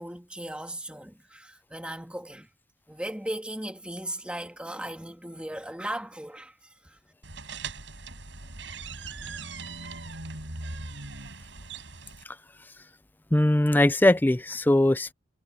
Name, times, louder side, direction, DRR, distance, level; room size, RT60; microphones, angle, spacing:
voice 1, 0.0-2.5 2.9-6.5 6.8-7.0, right 1 dB, 5° right, 1.8 m, -37 dB
sound 1, 7.2-12.2, right 3 dB, 85° right, 5.1 m, -40 dB
voice 2, 13.3-15.1, left 1 dB, 10° left, 0.4 m, -21 dB
head